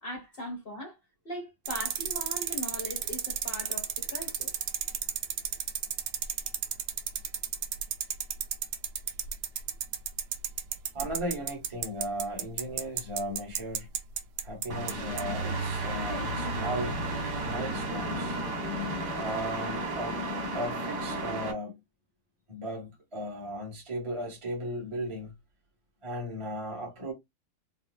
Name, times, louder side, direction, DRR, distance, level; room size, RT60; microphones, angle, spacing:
voice 1, 0.0-1.0 1.2-4.6, equal, 35° left, 1.1 m, -40 dB
sound 1, 1.7-14.9 15.2-15.3, right 9 dB, 75° right, 1.0 m, -31 dB
voice 2, 10.9-13.9 14.4-17.0 17.4-18.4 19.1-21.8 22.5-25.3 26.0-27.1, equal, 30° right, 0.5 m, -36 dB
sound 2, 14.7-21.5, right 1 dB, 55° right, 1.5 m, -33 dB
4.0 x 2.3 x 2.3 m
omnidirectional pair, 2.4 m